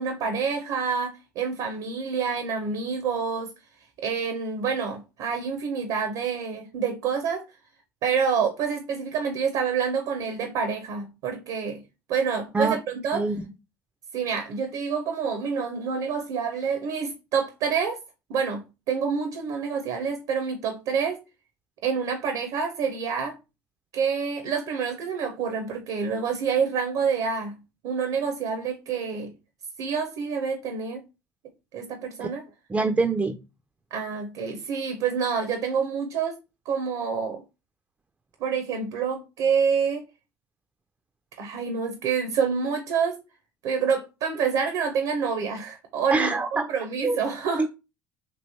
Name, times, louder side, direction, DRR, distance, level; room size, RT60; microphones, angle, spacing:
voice 1, 0.0-3.5 4.0-7.4 8.0-11.8 12.1-13.2 14.1-18.0 18.3-21.2 21.8-23.4 23.9-29.3 29.8-31.0 31.7-32.4 33.9-36.4 36.7-37.4 38.4-40.0 41.4-43.2 43.6-47.7, right 6 dB, 70° right, 0.6 m, -27 dB
voice 2, 13.1-13.5 32.2-32.3 32.7-33.4 46.1-46.7 47.0-47.2 47.6-47.7, right 3 dB, 15° right, 0.3 m, -24 dB
3.1 x 2.9 x 2.7 m
supercardioid pair, 85°, 8 cm